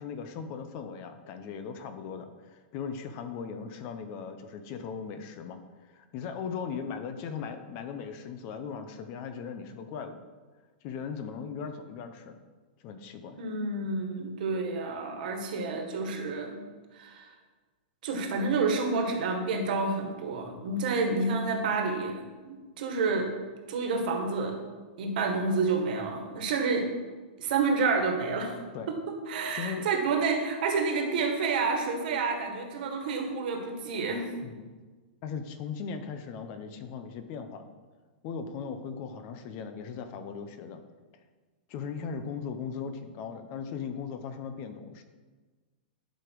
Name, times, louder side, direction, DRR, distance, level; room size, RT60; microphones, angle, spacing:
voice 1, 0.0-10.2 10.8-12.4 12.8-13.4 28.7-28.9 29.5-29.8 34.4-34.7 35.2-37.6 38.2-40.8 41.7-45.0, left 6 dB, 30° left, 8 dB, 0.6 m, -38 dB
voice 2, 13.4-16.6 16.9-17.3 18.0-23.3 23.7-24.6 25.0-26.9 27.4-28.6 29.3-34.3, right 4 dB, 55° right, 3 dB, 1.7 m, -29 dB
11.5 x 5.0 x 4.7 m, 1.4 s
supercardioid pair, 165°, 6 cm